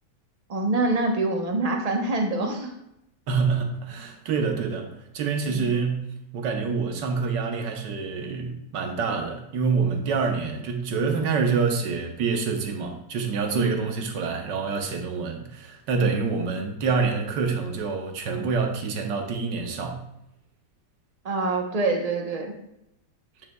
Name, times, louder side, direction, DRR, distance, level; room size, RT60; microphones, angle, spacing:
voice 1, 0.5-2.7 5.5-5.6 13.5-13.7 16.0-16.1 21.2-22.5, right 2 dB, 35° right, 2 dB, 0.6 m, -25 dB
voice 2, 3.3-4.9 5.1-6.0 6.3-20.0, right 5 dB, 90° right, 4 dB, 1.5 m, -26 dB
9.1 x 5.8 x 2.2 m, 0.82 s
omnidirectional pair, 1.8 m